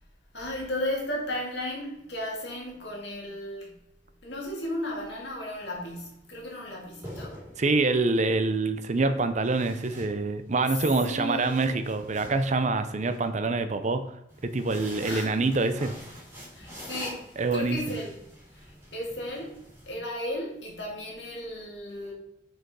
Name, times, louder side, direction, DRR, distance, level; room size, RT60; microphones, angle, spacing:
voice 1, 0.3-3.8 4.2-7.5 11.0-11.5 15.0-15.3 16.5-17.3 17.5-18.2 18.5-19.6 19.9-22.1, left 1 dB, 65° left, -2 dB, 2.3 m, -35 dB
sound 1, 5.6-5.9 6.8-8.0 9.4-10.7 11.1-13.2 14.3-20.0, equal, 15° right, 2.6 m, -45 dB
voice 2, 7.6-14.0 14.5-15.9 17.4-17.8, right 3 dB, 40° right, 9 dB, 0.6 m, -25 dB
6.5 x 4.8 x 4.7 m, 0.80 s
head